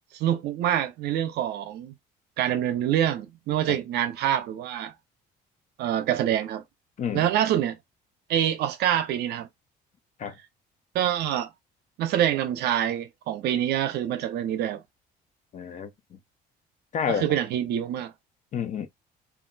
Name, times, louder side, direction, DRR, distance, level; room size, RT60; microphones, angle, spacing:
voice 1, 0.1-1.9 2.4-4.9 5.8-6.6 7.1-7.8 8.3-9.5 10.9-11.5 12.0-14.8 17.1-18.1, right 11 dB, 75° right, 0.6 m, -26 dB
voice 2, 15.5-15.9 16.9-17.3 18.5-18.9, left 7 dB, 45° left, 0.7 m, -29 dB
2.5 x 2.1 x 3.8 m
cardioid pair, 110°, 17 cm